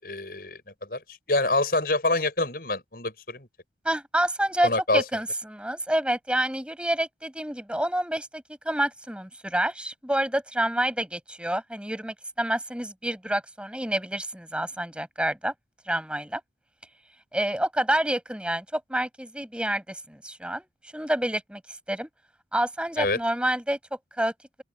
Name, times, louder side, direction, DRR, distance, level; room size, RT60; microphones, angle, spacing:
voice 1, 0.0-3.5 4.6-5.0 23.0-23.2, left 2 dB, 55° left, 7.2 m, -26 dB
voice 2, 3.8-15.5 15.9-16.4 17.3-21.6 21.9-22.1 22.5-23.8 24.2-24.3, right 1 dB, 5° right, 7.4 m, -28 dB
open air
head